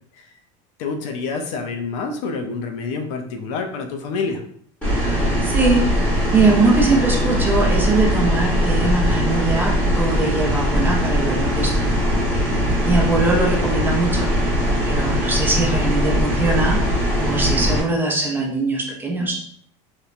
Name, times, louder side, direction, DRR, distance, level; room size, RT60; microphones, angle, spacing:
voice 1, 0.8-4.4, left 4 dB, 75° left, 5 dB, 0.5 m, -27 dB
sound 1, 4.8-17.8, equal, 5° left, 0.9 m, -20 dB
voice 2, 5.4-5.8 6.3-12.1 12.8-14.3 14.9-16.8 17.2-19.4, right 3 dB, 10° right, -2 dB, 0.5 m, -21 dB
3.0 x 2.1 x 2.4 m, 0.63 s
cardioid pair, 150°, 16 cm